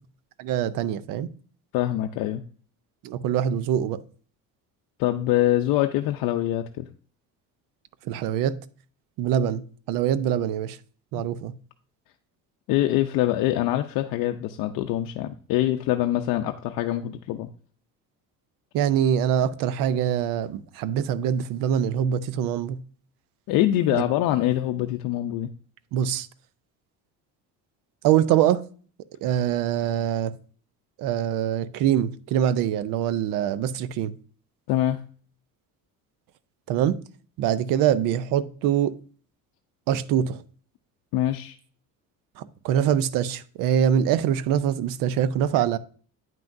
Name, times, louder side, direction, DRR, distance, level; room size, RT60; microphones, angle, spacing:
voice 1, 0.4-1.3 3.0-4.0 8.1-8.6 9.2-10.8 11.1-11.5 18.7-22.8 23.9-24.0 25.9-26.3 28.0-28.6 29.2-30.3 31.0-34.1 36.7-37.0 37.4-38.9 39.9-40.4 42.4-45.8, right 10 dB, 70° right, 0.6 m, -24 dB
voice 2, 1.7-2.4 5.0-6.9 11.1-11.2 12.7-17.5 23.5-25.5 34.7-35.0 41.1-41.6, left 13 dB, 70° left, 0.6 m, -24 dB
8.9 x 5.8 x 2.6 m
cardioid pair, 165°, 35 cm